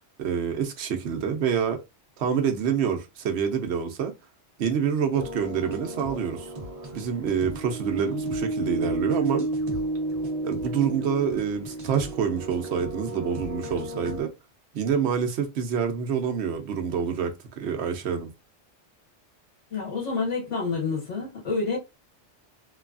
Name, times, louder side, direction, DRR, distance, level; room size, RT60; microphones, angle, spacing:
voice 1, 0.2-1.8 2.2-4.1 4.6-6.5 6.9-9.5 10.4-14.3 14.7-18.3, right 7 dB, 70° right, 0.9 m, -27 dB
sound 1, 5.1-14.2, right 1 dB, 35° right, 0.8 m, -32 dB
voice 2, 19.7-21.8, left 4 dB, 85° left, 1.7 m, -28 dB
3.2 x 2.2 x 2.4 m
omnidirectional pair, 1.2 m